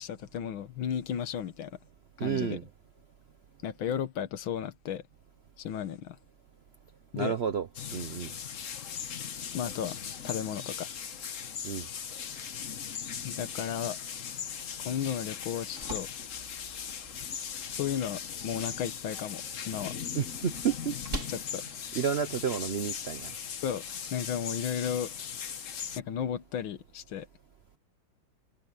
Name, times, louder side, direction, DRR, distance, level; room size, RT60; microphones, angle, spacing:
voice 1, 0.0-1.7 2.2-2.6 3.6-5.0 5.6-6.2 7.1-7.3 9.5-10.0 10.2-10.9 13.2-14.0 14.8-16.1 17.7-19.9 21.3-21.6 23.6-23.8 24.1-25.1 26.0-27.3, left 9 dB, 90° left, 1.9 m, -34 dB
voice 2, 2.2-2.6 7.2-8.3 11.6-11.9 20.1-21.0 21.9-23.3, right 7 dB, 80° right, 0.5 m, -31 dB
sound 1, 7.7-26.0, left 7 dB, 50° left, 1.2 m, -39 dB
sound 2, 15.3-23.3, right 2 dB, 40° right, 3.8 m, -46 dB
omnidirectional pair, 2.1 m